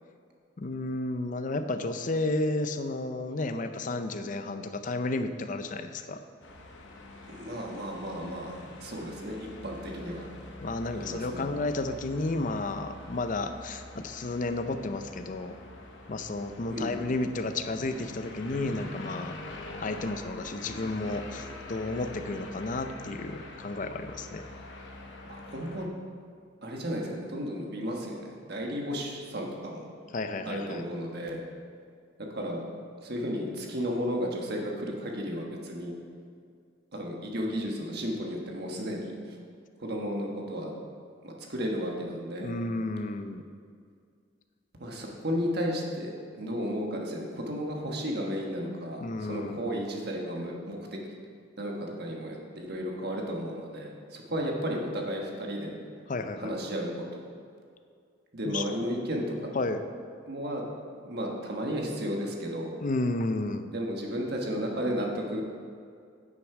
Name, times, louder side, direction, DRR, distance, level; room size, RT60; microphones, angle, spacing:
voice 1, 0.6-6.2 10.6-15.5 16.1-19.4 19.8-24.4 30.1-30.8 42.4-43.4 49.0-49.7 54.4-54.5 56.1-56.5 58.4-58.6 59.5-59.8 62.8-63.7, left 2 dB, 40° left, 8 dB, 0.5 m, -32 dB
sound 1, 6.4-25.9, left 2 dB, 65° left, 0.9 m, -45 dB
voice 2, 7.3-8.5 8.8-10.2 10.9-11.5 16.7-16.9 25.5-25.9 26.6-29.9 30.4-31.4 32.2-32.6 33.0-35.9 36.9-39.4 39.8-40.7 41.2-42.5 44.8-51.0 51.6-55.7 56.4-57.3 58.3-59.5 60.3-60.6 61.0-62.8 63.7-65.4, equal, 55° right, 0 dB, 1.3 m, -33 dB
9.5 x 6.2 x 4.9 m, 2.2 s
head